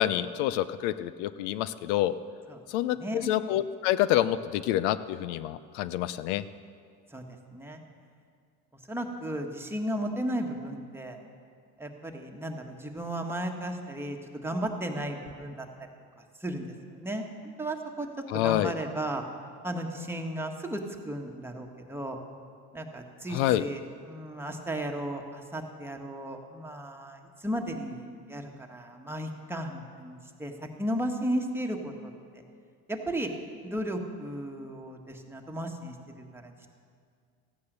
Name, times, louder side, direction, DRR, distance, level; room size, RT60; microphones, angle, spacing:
voice 1, 0.0-2.1 2.7-6.4 18.3-18.7 23.3-23.7, left 13 dB, 80° left, 15 dB, 0.6 m, -27 dB
voice 2, 2.9-3.3 7.1-7.2 7.5-7.8 8.9-11.2 11.8-15.7 16.4-17.2 17.6-18.1 18.4-19.2 19.6-22.2 22.7-32.4 32.9-33.3 33.6-36.7, right 1 dB, 5° right, 2 dB, 1.6 m, -35 dB
15.5 x 9.6 x 6.7 m, 2.2 s
supercardioid pair, 90°, 33 cm